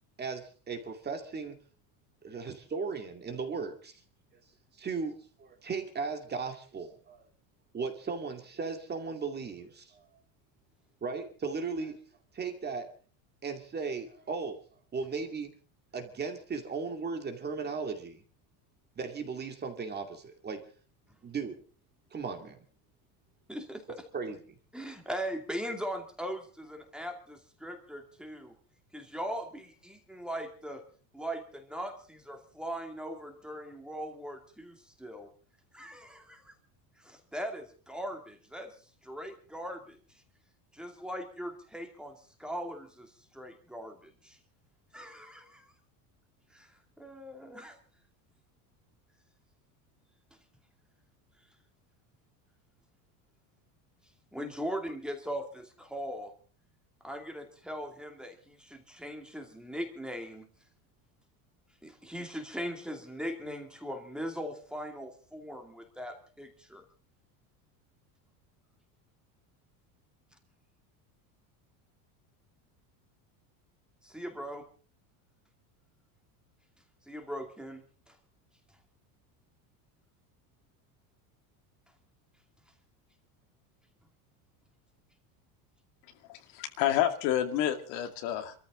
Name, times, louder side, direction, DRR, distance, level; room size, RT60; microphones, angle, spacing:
voice 1, 0.2-1.6 2.2-4.0 4.8-7.2 7.7-10.0 11.0-12.0 12.3-12.9 13.4-14.6 14.9-15.5 15.9-18.2 19.0-20.6 21.2-21.6 22.1-22.6 24.1-24.6, right 4 dB, 20° right, 5 dB, 2.4 m, -36 dB
voice 2, 23.5-24.0 24.7-28.5 28.9-30.8 31.1-35.3 35.7-36.5 37.0-38.7 39.0-40.2 40.7-44.4 44.9-45.7 46.5-47.8 54.3-56.3 57.0-60.5 61.8-66.8 74.0-74.6 77.1-78.2, equal, ahead, 4 dB, 2.6 m, -40 dB
voice 3, 86.3-88.5, left 11 dB, 65° left, 7 dB, 2.4 m, -29 dB
27.5 x 14.0 x 3.8 m, 0.39 s
cardioid pair, 150°, 45 cm